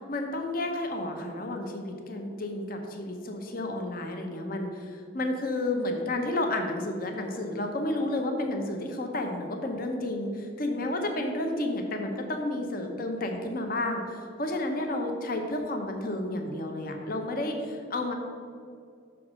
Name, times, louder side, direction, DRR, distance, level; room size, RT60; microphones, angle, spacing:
voice 1, 0.1-18.1, left 1 dB, 45° left, 3 dB, 0.8 m, -31 dB
6.3 x 4.7 x 6.1 m, 2.3 s
head